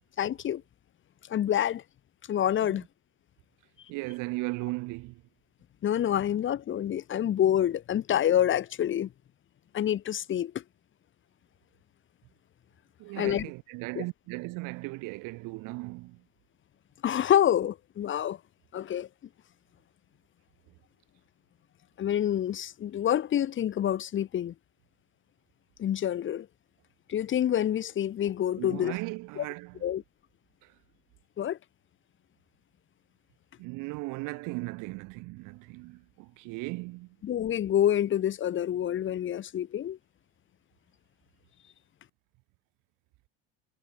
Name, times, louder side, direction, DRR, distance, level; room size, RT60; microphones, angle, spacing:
voice 1, 0.2-0.6 1.3-1.8 2.3-2.8 5.8-9.1 9.7-10.6 13.2-13.5 14.0-14.1 17.0-18.4 18.7-19.1 22.0-24.5 25.8-26.5 27.1-29.0 29.4-29.5 29.8-30.0 31.4-31.6 37.2-40.0, left 10 dB, 35° left, 3.7 m, -27 dB
voice 2, 3.9-5.2 13.0-16.2 28.6-29.8 30.6-30.7 33.6-37.2, right 24 dB, 70° right, 4.8 m, -37 dB
cardioid pair, 150°, 32 cm